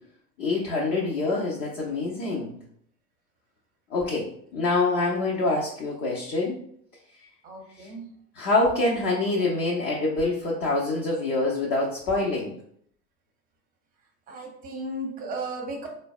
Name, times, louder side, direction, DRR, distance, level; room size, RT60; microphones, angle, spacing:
voice 1, 0.4-2.5 3.9-4.3 4.5-6.6 7.8-7.9 8.3-12.5, left 2 dB, 30° left, -4 dB, 0.5 m, -25 dB
voice 2, 7.4-8.1 14.3-15.9, right 2 dB, 20° right, 1 dB, 0.6 m, -35 dB
3.8 x 2.1 x 2.3 m, 0.65 s
figure-of-eight pair, 85°, 47 cm